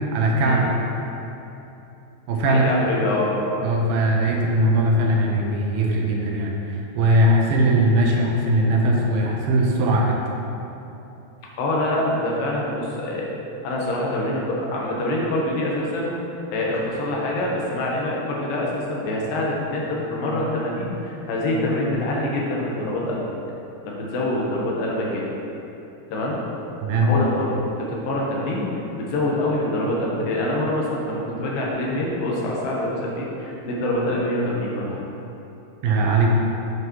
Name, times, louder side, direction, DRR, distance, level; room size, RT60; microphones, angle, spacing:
voice 1, 0.1-0.7 2.3-2.6 3.6-10.2 26.8-27.1 35.8-36.3, right 1 dB, 80° right, -1 dB, 2.5 m, -20 dB
voice 2, 2.5-3.3 11.6-13.3 13.6-16.1 16.5-23.2 23.8-25.2 26.1-26.4 27.1-28.7 29.0-35.0, left 1 dB, 80° left, -3 dB, 2.9 m, -25 dB
8.6 x 7.5 x 3.1 m, 3.0 s
omnidirectional pair, 4.0 m